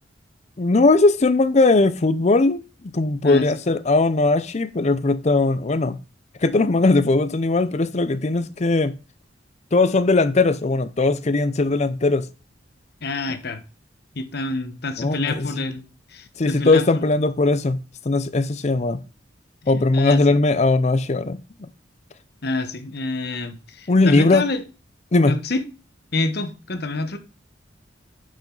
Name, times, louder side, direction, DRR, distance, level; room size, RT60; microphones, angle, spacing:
voice 1, 0.6-2.6 2.9-6.0 6.4-8.9 9.7-12.3 15.0-15.7 16.4-19.0 19.7-21.7 23.9-24.4 25.1-25.4, left 3 dB, 35° left, 0.5 m, -19 dB
voice 2, 13.0-13.6 14.1-15.8 16.1-17.0 19.9-20.4 22.4-24.6 25.2-25.6 26.1-27.2, left 2 dB, 55° left, 1.1 m, -27 dB
9.2 x 5.2 x 3.9 m
head